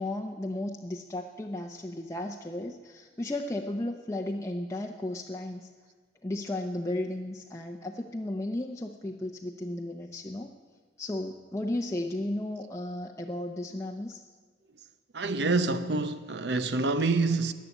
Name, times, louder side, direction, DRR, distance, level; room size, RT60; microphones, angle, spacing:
voice 1, 0.0-5.7 6.2-10.5 11.0-14.2, left 1 dB, 15° left, 0.6 m, -34 dB
voice 2, 15.1-17.5, right 3 dB, 65° right, 0.7 m, -27 dB
14.0 x 9.5 x 8.7 m
head